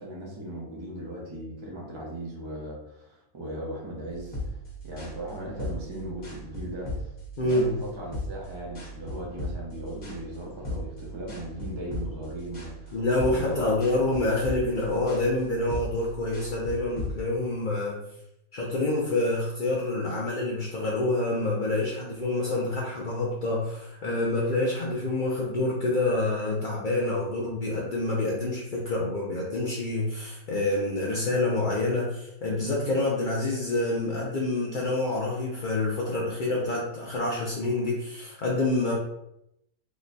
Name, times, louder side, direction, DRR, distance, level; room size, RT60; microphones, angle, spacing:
voice 1, 0.0-4.6 4.8-6.9 7.4-13.7, right 1 dB, 40° right, -3 dB, 0.4 m, -37 dB
sound 1, 4.1-17.1, equal, 45° left, 0.9 m, -38 dB
voice 2, 7.4-7.7 12.9-18.0 18.5-38.9, left 2 dB, 80° left, -4 dB, 0.4 m, -27 dB
3.0 x 2.2 x 3.8 m, 0.81 s
omnidirectional pair, 1.6 m